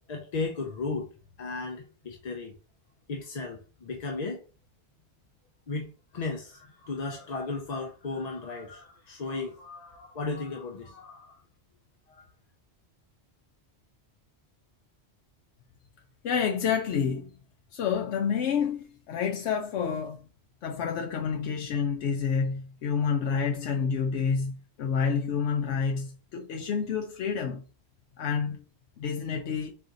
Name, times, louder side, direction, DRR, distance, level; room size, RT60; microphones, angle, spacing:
voice 1, 0.1-1.1 1.4-2.6 3.1-4.4 5.7-11.4 12.1-12.3, left 3 dB, 45° left, 0.6 m, -35 dB
voice 2, 16.2-17.3 17.7-20.3 20.6-27.6 28.2-28.6 29.0-29.7, left 6 dB, 90° left, 0.9 m, -29 dB
4.1 x 2.7 x 3.8 m
omnidirectional pair, 1.1 m